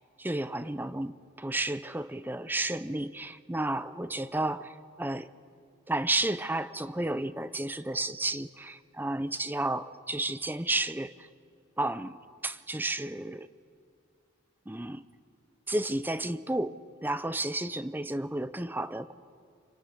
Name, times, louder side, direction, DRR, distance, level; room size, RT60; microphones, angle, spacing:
voice 1, 0.2-5.3 5.9-11.3 11.8-12.2 12.4-13.5 14.7-15.0 15.7-19.1, right 2 dB, 10° right, 14 dB, 0.6 m, -32 dB
28.0 x 23.0 x 6.7 m, 2.4 s
head